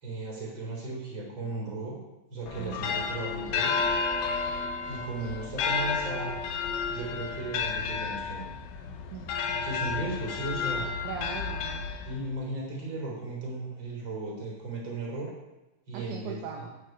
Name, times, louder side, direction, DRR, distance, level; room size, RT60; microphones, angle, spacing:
voice 1, 0.0-2.0 2.3-3.7 4.9-6.3 6.9-8.5 9.5-10.9 12.0-15.3 15.9-16.4, right 2 dB, 30° right, -2 dB, 4.3 m, -36 dB
sound 1, 2.5-12.4, left 5 dB, 80° left, 2.9 m, -32 dB
voice 2, 2.6-2.9 9.1-9.4 11.0-11.9 15.9-16.7, right 6 dB, 65° right, 1 dB, 2.1 m, -39 dB
16.5 x 9.0 x 4.6 m, 1.0 s
omnidirectional pair, 4.4 m